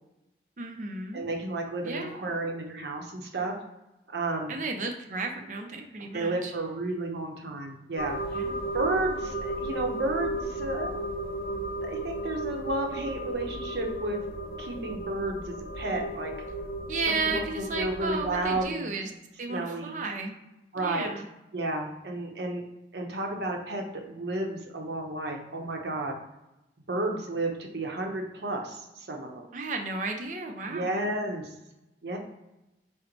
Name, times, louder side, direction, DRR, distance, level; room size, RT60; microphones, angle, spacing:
voice 1, 0.6-1.2 1.8-2.3 4.5-6.5 8.3-8.7 16.9-19.1 19.4-20.3 20.8-21.3 29.5-31.0, right 3 dB, 45° right, 3 dB, 0.5 m, -33 dB
voice 2, 1.1-3.5 4.1-4.5 6.0-8.2 8.7-11.0 11.8-14.2 14.6-16.3 17.1-18.9 19.5-20.0 20.7-21.1 21.5-22.6 22.9-26.1 26.9-29.5 30.6-31.5 32.0-32.2, right 2 dB, 70° right, 2 dB, 0.7 m, -32 dB
sound 1, 8.0-18.6, right 1 dB, 55° left, 0.4 m, -35 dB
4.4 x 2.1 x 3.9 m, 0.94 s
head